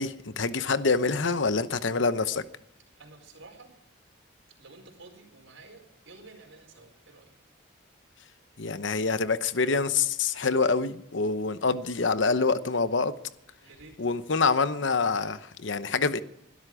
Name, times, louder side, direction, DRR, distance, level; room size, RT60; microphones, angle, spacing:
voice 1, 0.0-2.4 8.6-13.1 14.0-16.2, left 4 dB, 70° left, 0.9 m, -26 dB
voice 2, 3.0-3.7 4.6-7.2 13.6-14.0, right 3 dB, 75° right, 4.6 m, -51 dB
21.5 x 13.0 x 4.9 m
head